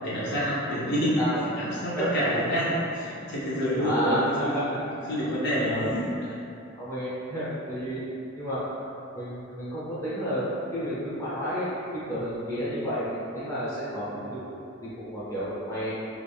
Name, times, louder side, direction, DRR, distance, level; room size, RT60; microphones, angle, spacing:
voice 1, 0.0-1.2 1.6-4.6 5.1-6.3, equal, 55° left, -9 dB, 0.8 m, -27 dB
voice 2, 3.8-4.2 4.5-4.6 5.0-5.1 5.6-5.9 6.8-8.0 8.4-8.6 9.1-11.7 11.9-14.4 14.8-15.9, equal, 15° left, -11 dB, 0.8 m, -31 dB
3.1 x 2.4 x 3.4 m, 2.7 s
head